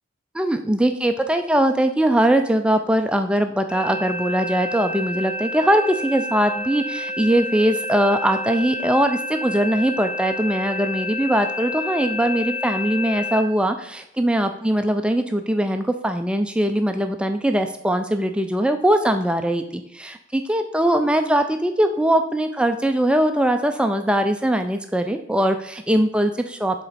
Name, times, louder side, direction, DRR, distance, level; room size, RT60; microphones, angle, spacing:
voice 1, 0.3-26.8, right 1 dB, 5° right, 6 dB, 0.3 m, -21 dB
sound 1, 3.7-13.4, left 2 dB, 40° left, 1.6 m, -29 dB
7.5 x 3.9 x 4.1 m, 0.76 s
head